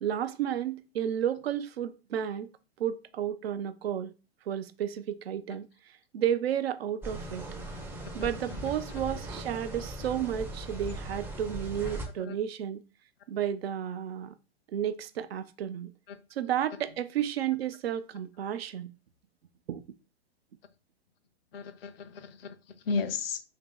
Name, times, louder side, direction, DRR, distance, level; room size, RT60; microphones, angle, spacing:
voice 1, 0.0-2.5 2.8-4.1 4.5-5.7 6.1-7.4 8.1-12.8 13.3-14.3 14.7-15.9 16.3-18.9 19.7-19.8, right 10 dB, 70° right, 0.5 m, -32 dB
sound 1, 7.0-12.0, right 1 dB, 5° right, 0.5 m, -39 dB
voice 2, 21.5-23.4, left 5 dB, 65° left, 0.6 m, -34 dB
3.0 x 2.8 x 3.6 m
hypercardioid pair, 110°, 32 cm